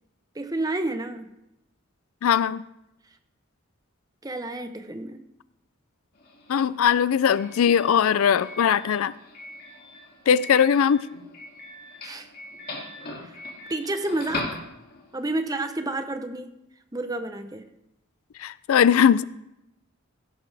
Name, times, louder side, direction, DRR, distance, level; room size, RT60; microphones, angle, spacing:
voice 1, 0.3-1.3 4.2-5.2 12.0-12.3 13.2-13.4 13.7-14.6 15.1-16.5 16.9-17.6, right 2 dB, 15° right, 0.8 m, -30 dB
voice 2, 2.2-2.6 6.5-9.1 10.3-11.1 18.4-19.2, left 8 dB, 85° left, 0.4 m, -20 dB
Doorbell, 6.1-15.2, left 2 dB, 45° left, 2.5 m, -40 dB
16.0 x 11.5 x 3.4 m
head